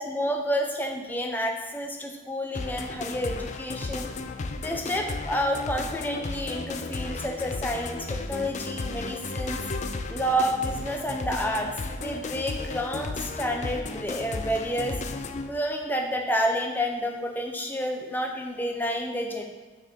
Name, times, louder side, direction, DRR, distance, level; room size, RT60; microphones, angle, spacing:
voice 1, 0.0-4.1 4.6-9.6 10.1-11.7 12.0-15.0 15.5-19.4, equal, 10° left, 2 dB, 0.7 m, -29 dB
sound 1, 2.5-15.5, left 3 dB, 35° left, 0.4 m, -34 dB
6.1 x 4.4 x 6.3 m, 1.3 s
head